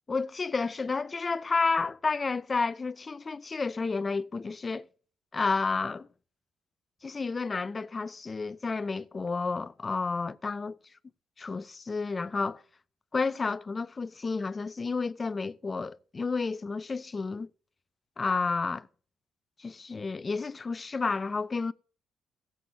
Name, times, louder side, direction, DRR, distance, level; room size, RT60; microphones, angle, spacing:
voice 1, 0.1-4.9 5.3-6.1 7.0-10.7 11.4-12.6 13.1-17.5 18.2-18.9 19.6-21.7, left 4 dB, 30° left, 0.4 m, -31 dB
17.0 x 7.7 x 2.7 m
cardioid pair, 90°, 0 cm